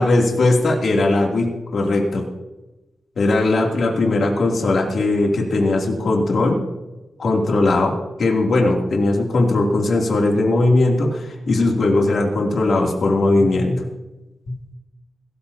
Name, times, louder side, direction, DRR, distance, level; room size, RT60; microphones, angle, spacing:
voice 1, 0.0-2.2 3.2-6.6 7.2-13.8, left 2 dB, 60° left, -1 dB, 2.8 m, -19 dB
21.5 x 14.0 x 2.8 m, 1.1 s
wide cardioid pair, 145°, 0 cm